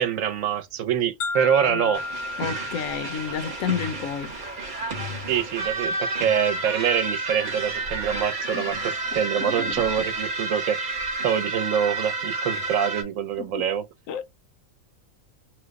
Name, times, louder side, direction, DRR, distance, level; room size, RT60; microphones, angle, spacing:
voice 1, 0.0-2.0 5.3-11.0 11.2-13.8, right 8 dB, 75° right, 1.0 m, -25 dB
sound 1, 1.2-5.2, left 3 dB, 60° left, 0.8 m, -34 dB
sound 2, 1.9-13.0, right 2 dB, 45° right, 0.9 m, -30 dB
voice 2, 2.4-4.3 8.5-8.7 9.4-10.1 13.4-13.7 14.1-14.3, left 7 dB, 80° left, 1.0 m, -31 dB
3.0 x 2.1 x 3.4 m
omnidirectional pair, 1.4 m